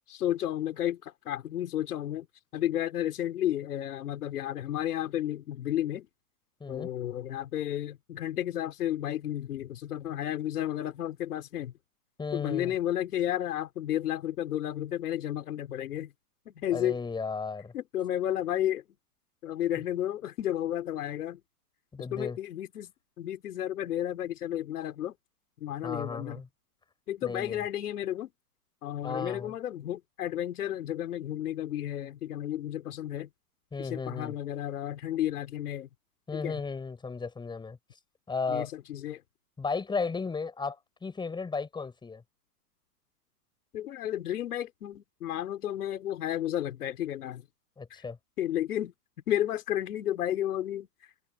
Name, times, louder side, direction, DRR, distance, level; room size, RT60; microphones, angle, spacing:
voice 1, 0.0-2.3 2.5-6.1 6.7-11.7 12.3-16.1 16.5-17.0 17.7-18.8 19.4-21.4 22.1-22.9 23.2-25.1 25.6-26.4 27.1-28.3 28.8-33.3 33.8-35.9 36.3-36.6 38.5-39.2 43.7-47.4 47.9-48.0 48.4-48.9 49.3-50.9, left 12 dB, 70° left, 4.8 m, -32 dB
voice 2, 12.2-12.7 16.7-17.7 21.9-22.4 25.8-26.5 27.2-27.6 29.0-29.5 33.7-34.3 36.3-37.8 38.3-38.7 39.6-42.2 47.8-48.2, left 4 dB, 10° left, 7.7 m, -34 dB
hypercardioid pair, 140°, 47 cm